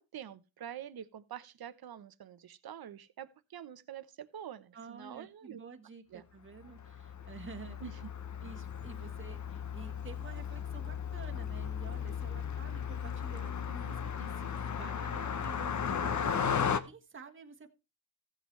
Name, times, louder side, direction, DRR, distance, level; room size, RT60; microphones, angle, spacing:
voice 1, 0.0-5.6 6.1-6.2 7.8-7.9, right 9 dB, 50° right, 1.0 m, -46 dB
voice 2, 4.7-8.0 8.4-17.7, right 5 dB, 25° right, 1.4 m, -50 dB
Car passing by, 6.7-16.8, left 7 dB, 35° left, 0.9 m, -36 dB
15.0 x 8.2 x 3.2 m
cardioid pair, 115°, 48 cm